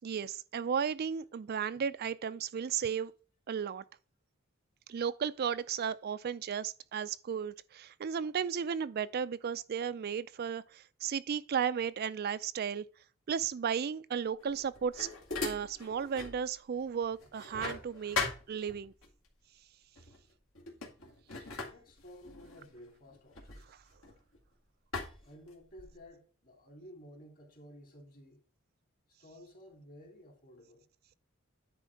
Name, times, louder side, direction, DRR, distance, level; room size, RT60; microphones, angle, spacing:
voice 1, 0.0-3.1 3.5-3.8 4.9-12.9 13.3-15.1 15.4-18.2 18.5-18.9, right 7 dB, 45° right, 0.4 m, -34 dB
sound 1, 14.4-16.4 16.8-19.1 20.0-20.2 20.5-24.4 24.9-26.1, left 4 dB, 70° left, 2.2 m, -40 dB
voice 2, 21.7-23.8 25.2-28.4 29.2-30.9, equal, 40° left, 2.7 m, -54 dB
10.0 x 4.2 x 4.6 m
head